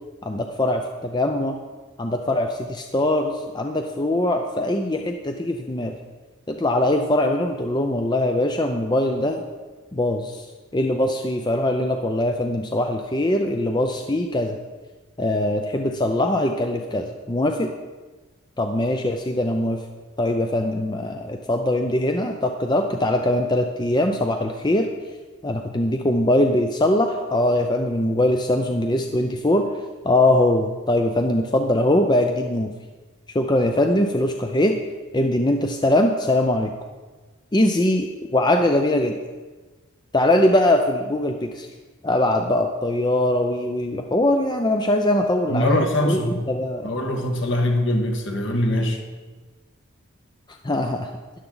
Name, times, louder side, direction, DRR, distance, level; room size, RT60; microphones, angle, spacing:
voice 1, 0.2-1.6 2.0-6.0 6.5-9.4 9.9-10.5 10.7-14.6 15.2-17.7 18.6-19.8 20.2-24.9 25.4-29.7 30.0-32.7 33.3-34.7 35.1-36.7 37.5-39.2 40.1-41.7 42.0-46.9 50.6-51.1, left 1 dB, 20° left, 4 dB, 0.5 m, -22 dB
voice 2, 45.5-46.4 46.8-49.0, left 1 dB, 55° left, 3 dB, 1.5 m, -22 dB
12.5 x 10.5 x 3.9 m, 1.3 s
head